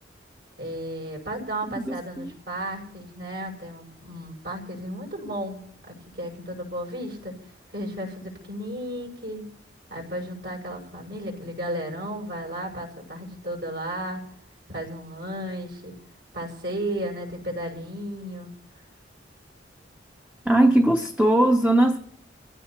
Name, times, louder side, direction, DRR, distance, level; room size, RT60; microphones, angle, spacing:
voice 1, 0.6-7.3 7.7-9.4 9.9-14.2 14.7-15.9 16.3-18.5, right 1 dB, 70° right, 6.2 m, -34 dB
voice 2, 1.8-2.3 20.4-22.0, right 1 dB, 5° right, 0.6 m, -20 dB
28.0 x 16.0 x 2.9 m
head